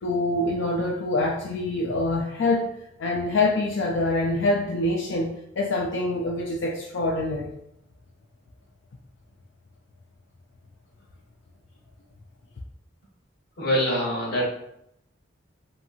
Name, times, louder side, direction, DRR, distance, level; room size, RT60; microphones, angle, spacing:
voice 1, 0.0-2.7 3.0-7.5, left 2 dB, 80° left, -2 dB, 0.4 m, -25 dB
voice 2, 13.6-14.4, equal, 55° left, -3 dB, 0.9 m, -24 dB
2.8 x 2.7 x 2.4 m, 0.78 s
head